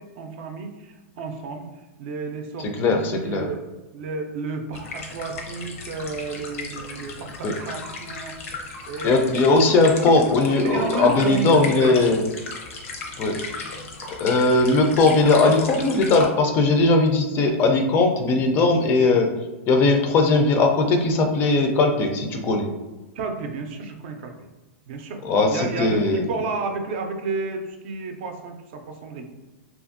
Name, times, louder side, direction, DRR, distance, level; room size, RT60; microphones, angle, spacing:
voice 1, 0.0-1.6 2.0-3.6 3.9-8.3 8.9-9.3 10.0-12.0 14.6-14.9 23.1-24.3 24.9-25.2 25.5-29.2, right 4 dB, 55° right, 4 dB, 0.5 m, -32 dB
voice 2, 2.6-3.5 7.4-7.5 9.0-12.2 13.2-13.4 14.2-19.3 19.7-22.7 25.2-26.2, left 3 dB, 30° left, 3 dB, 0.4 m, -19 dB
sound 1, 4.7-16.3, left 3 dB, 80° left, 0.6 m, -36 dB
2.7 x 2.4 x 2.5 m, 1.1 s
supercardioid pair, 145°, 7 cm